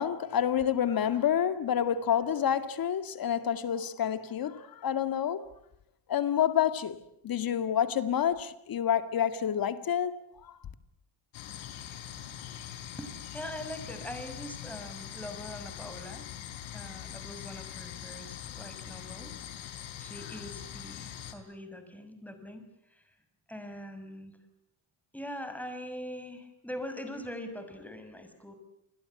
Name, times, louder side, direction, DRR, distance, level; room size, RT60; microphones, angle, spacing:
voice 1, 0.0-5.4 6.1-7.0 7.2-10.5, left 9 dB, 45° left, 2.2 m, -28 dB
sound 1, 11.3-21.3, left 10 dB, 75° left, 4.1 m, -43 dB
voice 2, 12.9-16.3 16.7-19.5 20.0-22.6 22.9-23.0 23.5-24.4 25.1-28.5, left 1 dB, 5° left, 6.2 m, -42 dB
28.5 x 22.0 x 8.3 m
cardioid pair, 110°, 47 cm